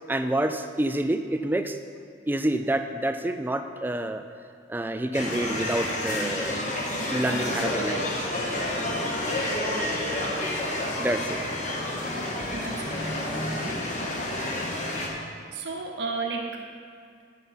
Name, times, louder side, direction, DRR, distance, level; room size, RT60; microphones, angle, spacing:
voice 1, 0.1-1.8 2.3-4.2 4.7-6.6 7.1-8.1 11.0-11.4 12.0-12.5, right 1 dB, 10° right, 8 dB, 0.3 m, -28 dB
sound 1, 5.1-15.1, left 1 dB, 40° left, 1.3 m, -29 dB
voice 2, 10.0-10.5 12.5-13.2 15.5-16.6, right 4 dB, 65° right, 1 dB, 0.8 m, -34 dB
7.9 x 7.5 x 5.5 m, 2.3 s
head